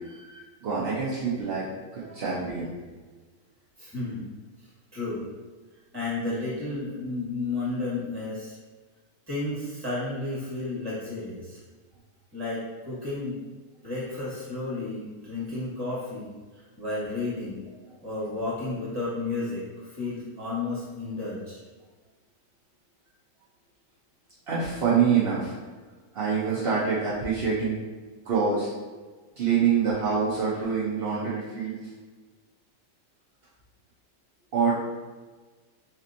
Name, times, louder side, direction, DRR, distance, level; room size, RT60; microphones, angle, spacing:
voice 1, 0.0-2.7 24.5-25.6 26.1-27.8 28.2-28.7 29.4-31.8 34.5-34.7, right 6 dB, 65° right, -8 dB, 0.5 m, -26 dB
voice 2, 3.8-4.3 4.9-5.2 5.9-8.6 9.3-11.6 12.3-13.4 13.8-17.6 18.0-21.6, left 2 dB, 15° right, -7 dB, 1.2 m, -32 dB
4.2 x 2.9 x 2.6 m, 1.3 s
omnidirectional pair, 1.8 m